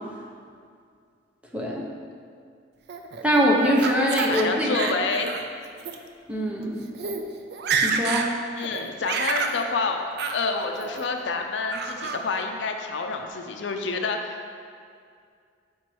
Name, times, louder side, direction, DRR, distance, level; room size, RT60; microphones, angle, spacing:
Laughter, 2.9-4.4 4.7-5.4 5.8-6.0 6.6-6.7 6.9-7.2 7.5-8.3 8.6-9.6 10.2-10.4 10.8-11.3 11.7-12.2, right 5 dB, 60° right, 0.4 m, -28 dB
voice 1, 3.2-4.8 6.3-6.9 7.8-8.3, equal, 5° right, -2 dB, 0.7 m, -23 dB
voice 2, 4.3-5.3 8.6-10.0 10.3-14.4, left 4 dB, 70° left, 4 dB, 0.5 m, -28 dB
5.1 x 4.5 x 4.5 m, 2.2 s
head